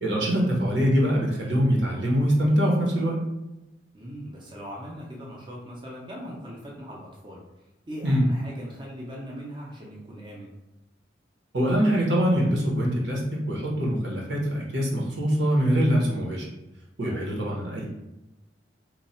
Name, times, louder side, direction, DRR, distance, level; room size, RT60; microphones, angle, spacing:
voice 1, 0.0-3.2 8.0-8.2 11.5-16.5 17.0-17.9, equal, 85° right, -3 dB, 1.0 m, -23 dB
voice 2, 3.9-7.4 7.9-10.5 17.1-17.3, equal, 25° right, -3 dB, 0.6 m, -40 dB
3.1 x 2.2 x 4.2 m, 0.95 s
head